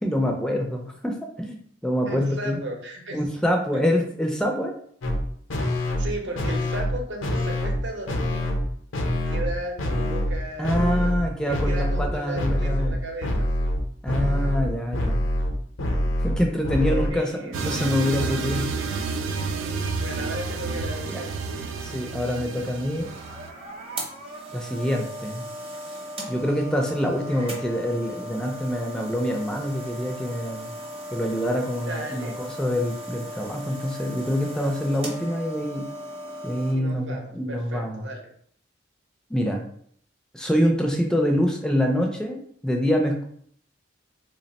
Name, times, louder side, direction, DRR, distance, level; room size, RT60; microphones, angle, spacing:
voice 1, 0.0-2.6 3.1-4.7 10.6-13.1 14.0-15.3 16.2-18.7 21.1-21.2 21.8-23.1 24.5-25.5 26.3-30.7 31.1-35.9 36.4-38.1 39.3-39.6 40.3-43.2, equal, 5° left, 1 dB, 0.4 m, -25 dB
voice 2, 2.0-3.2 3.7-3.8 6.0-8.5 8.9-13.7 16.8-17.6 20.0-21.8 22.5-22.6 31.9-32.4 36.7-38.3, right 1 dB, 65° right, 1 dB, 0.8 m, -36 dB
sound 1, 5.0-5.2 5.5-6.1 6.4-6.9 7.2-7.8 8.1-8.7 8.9-9.5 9.8-10.4 10.6-11.2 11.5-12.1 12.4-13.0 13.2-17.1, left 1 dB, 80° left, 0.6 m, -25 dB
sound 2, 17.5-23.5, right 4 dB, 85° right, 0.4 m, -30 dB
sound 3, 22.7-36.7, right 1 dB, 30° right, 0.7 m, -37 dB
3.1 x 2.1 x 4.0 m, 0.63 s
head